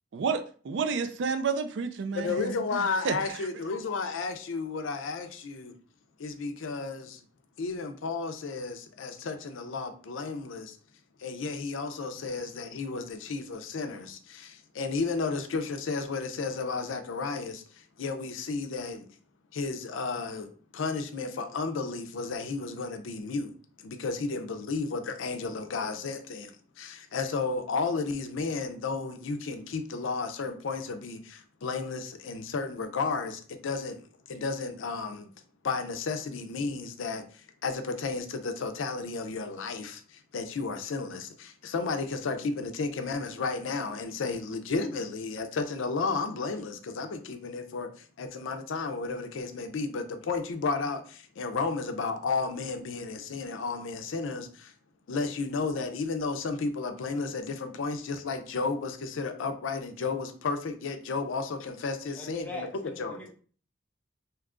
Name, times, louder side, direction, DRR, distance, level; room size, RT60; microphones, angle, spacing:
voice 1, 0.1-3.3, right 5 dB, 70° right, 0.4 m, -31 dB
voice 2, 2.1-5.8 6.2-7.2 7.6-10.8 11.2-19.0 19.5-20.5 20.7-23.5 23.8-26.5 26.8-35.3 35.6-47.9 48.2-54.7 55.1-63.2, left 4 dB, 90° left, 0.5 m, -33 dB
voice 3, 62.2-63.3, left 1 dB, 10° left, 0.5 m, -42 dB
2.8 x 2.3 x 3.6 m
head